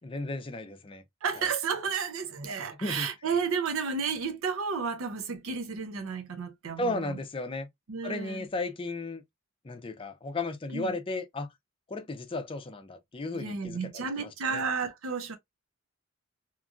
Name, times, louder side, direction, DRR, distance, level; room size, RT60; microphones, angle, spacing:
voice 1, 0.0-1.0 2.8-3.1 6.8-7.7 8.0-9.2 9.6-11.5 11.9-14.6, left 2 dB, 25° left, 0.5 m, -35 dB
voice 2, 1.2-7.2 7.9-8.4 10.7-11.0 13.3-15.4, right 5 dB, 80° right, 0.6 m, -32 dB
2.9 x 2.5 x 2.4 m
head